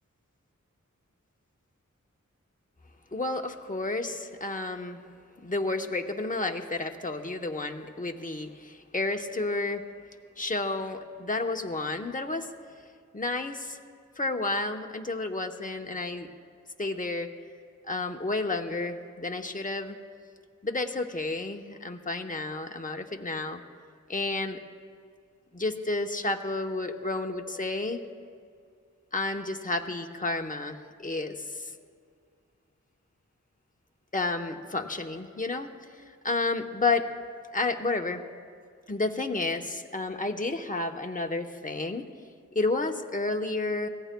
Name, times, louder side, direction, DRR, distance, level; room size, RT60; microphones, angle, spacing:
voice 1, 3.1-5.0 5.4-9.8 10.4-12.5 13.1-13.8 14.2-16.3 16.8-17.3 17.9-20.0 20.6-23.6 24.1-24.6 25.5-28.0 29.1-31.7 34.1-35.7 36.0-37.1 37.5-38.2 38.9-42.0 42.5-43.9, left 2 dB, 25° left, 4 dB, 0.9 m, -31 dB
24.0 x 17.0 x 2.2 m, 2.2 s
wide cardioid pair, 50°, 32 cm